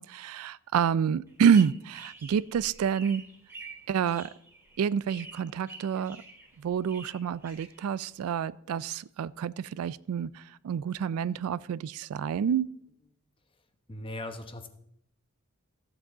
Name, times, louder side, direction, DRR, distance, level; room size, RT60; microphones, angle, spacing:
voice 1, 0.0-3.2 3.9-4.3 4.8-6.2 6.6-12.7, right 7 dB, 75° right, 19 dB, 0.3 m, -28 dB
sound 1, 1.3-8.3, right 3 dB, 15° right, 2.3 m, -49 dB
voice 2, 13.9-14.7, left 1 dB, 25° left, 7 dB, 0.9 m, -38 dB
14.5 x 7.5 x 3.9 m, 0.71 s
head